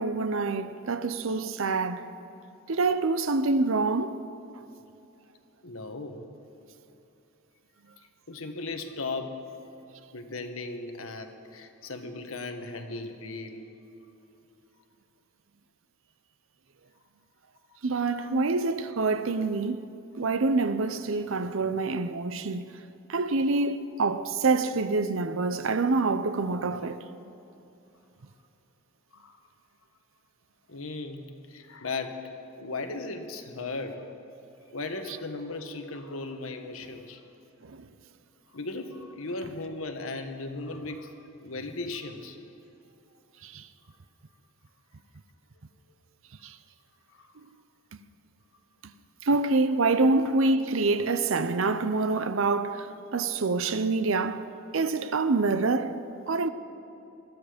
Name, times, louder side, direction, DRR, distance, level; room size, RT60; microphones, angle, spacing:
voice 1, 0.0-2.1 2.7-4.2 17.8-22.8 23.1-27.0 37.6-37.9 43.4-43.7 46.4-46.6 48.8-48.9 49.2-54.5 54.7-56.5, right 3 dB, 75° right, 0.7 m, -26 dB
voice 2, 5.6-6.2 8.3-9.4 10.1-13.7 18.1-18.9 23.7-23.8 29.1-29.4 30.7-32.3 32.6-34.1 34.7-37.2 38.5-42.4 47.1-47.4, left 3 dB, 80° left, 1.4 m, -37 dB
21.0 x 13.5 x 5.1 m
head